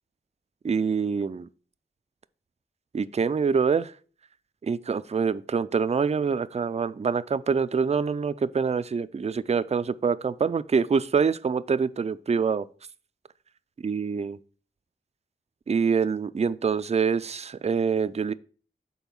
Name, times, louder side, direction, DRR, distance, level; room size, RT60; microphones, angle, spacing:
voice 1, 0.6-1.5 2.9-3.9 4.6-12.7 13.8-14.4 15.7-18.3, right 5 dB, 35° right, 0.4 m, -25 dB
5.4 x 4.0 x 6.0 m
wide cardioid pair, 50°, 20 cm